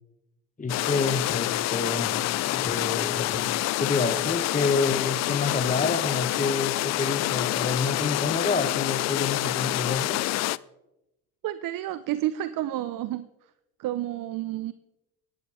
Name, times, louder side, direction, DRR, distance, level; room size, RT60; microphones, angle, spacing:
voice 1, 0.6-3.5 3.8-10.2, left 4 dB, 15° left, 7 dB, 1.2 m, -28 dB
sound 1, 0.7-10.6, left 16 dB, 35° left, 0.4 m, -27 dB
voice 2, 11.4-13.3 13.8-14.7, right 13 dB, 45° right, 14 dB, 0.7 m, -30 dB
17.5 x 12.5 x 3.5 m, 0.92 s
hypercardioid pair, 60°, 47 cm